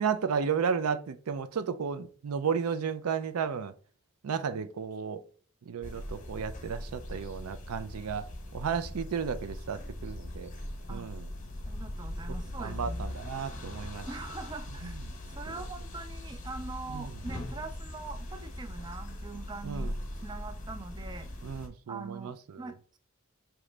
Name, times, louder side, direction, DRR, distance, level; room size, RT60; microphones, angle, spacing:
voice 1, 0.0-3.7 4.2-5.2 5.7-10.5 10.9-11.3 12.3-14.1 15.5-15.6 16.9-17.1 19.6-19.9 21.4-22.7, right 6 dB, 85° right, 0.4 m, -33 dB
sound 1, 5.8-21.7, left 1 dB, 35° left, 0.9 m, -40 dB
voice 2, 11.7-13.1 14.1-15.0 15.4-19.9 20.2-21.3 21.9-23.0, right 3 dB, 20° right, 0.3 m, -42 dB
4.8 x 3.0 x 3.2 m
head